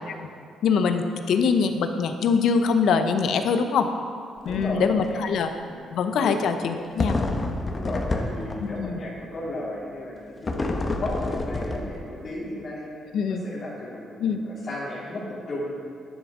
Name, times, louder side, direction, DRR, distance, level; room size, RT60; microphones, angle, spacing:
voice 1, 0.6-3.9 4.4-5.5 5.9-7.2 8.6-9.0 13.1-13.4 14.2-14.4, left 5 dB, 75° left, 7 dB, 0.8 m, -23 dB
voice 2, 4.4-5.8 6.2-6.4 7.7-10.7 11.0-12.9 13.3-15.9, left 1 dB, 55° left, -8 dB, 3.0 m, -34 dB
sound 1, 4.4-4.7 5.0-5.1 7.0-8.9 10.4-12.2, left 2 dB, 30° left, 1.1 m, -28 dB
11.0 x 9.8 x 3.7 m, 2.3 s
cardioid pair, 90°, 0 cm